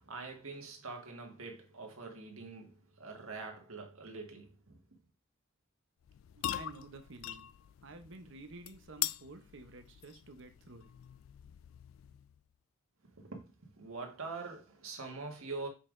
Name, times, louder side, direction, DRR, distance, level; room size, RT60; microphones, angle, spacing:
voice 1, 0.0-5.0 13.2-15.7, right 3 dB, 80° right, 1.6 m, -44 dB
sound 1, 6.0-12.4, left 13 dB, 70° left, 0.3 m, -43 dB
voice 2, 6.3-7.5 7.8-10.9, right 3 dB, 60° right, 0.8 m, -51 dB
6.7 x 5.6 x 2.6 m
head